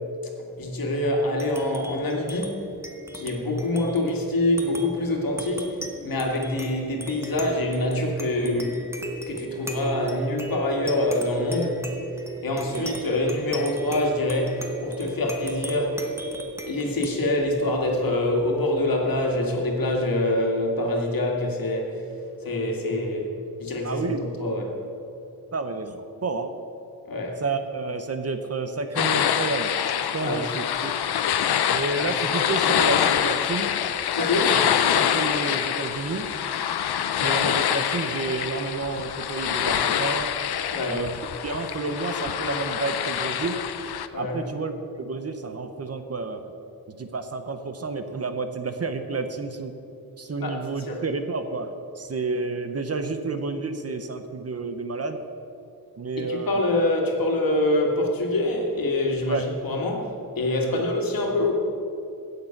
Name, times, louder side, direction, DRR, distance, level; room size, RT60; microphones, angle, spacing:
voice 1, 0.6-2.7 3.1-5.7 6.0-8.8 9.3-11.9 12.4-16.0 16.6-21.9 22.4-23.3 23.6-24.8 27.1-27.4 30.2-30.4 32.0-32.1 34.1-34.5 40.7-41.0 44.1-44.4 50.4-51.0 56.2-61.5, left 1 dB, 65° left, 0 dB, 2.0 m, -25 dB
sound 1, 1.2-20.0, right 2 dB, 5° right, 1.1 m, -37 dB
voice 2, 23.8-24.2 25.5-26.6 27.4-29.7 30.1-30.9 31.7-33.7 34.2-34.6 34.9-36.3 37.2-40.3 40.9-41.1 41.4-43.6 44.2-46.4 46.9-49.7 50.2-55.2 56.0-56.6 59.3-59.5 60.7-60.8, right 3 dB, 40° right, 8 dB, 0.8 m, -30 dB
sound 2, 29.0-44.1, left 9 dB, 85° left, 0.6 m, -25 dB
16.5 x 6.7 x 5.8 m, 2.7 s
wide cardioid pair, 170°, 38 cm